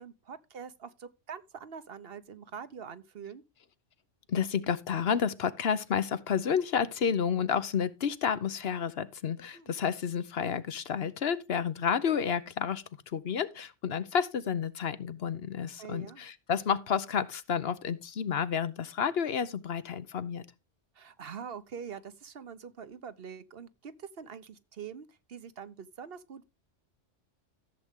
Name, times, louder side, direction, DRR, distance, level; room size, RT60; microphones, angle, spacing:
voice 1, 0.0-3.4 9.5-9.7 15.8-16.2 20.9-26.4, right 7 dB, 55° right, 1.1 m, -44 dB
voice 2, 4.3-20.4, left 7 dB, 60° left, 1.0 m, -30 dB
14.5 x 7.8 x 3.6 m
omnidirectional pair, 1.2 m